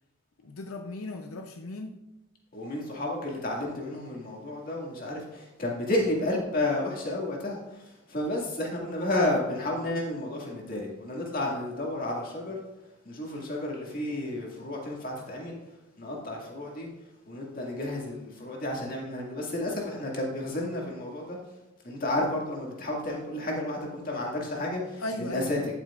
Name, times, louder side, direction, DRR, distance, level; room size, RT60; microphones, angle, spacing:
voice 1, 0.4-2.0 25.0-25.7, left 2 dB, 85° left, 5 dB, 0.6 m, -37 dB
voice 2, 2.5-12.6 13.0-15.6 16.0-16.9 17.3-21.4 21.8-25.6, left 1 dB, 40° left, -2 dB, 2.1 m, -31 dB
10.5 x 9.1 x 2.5 m, 0.98 s
head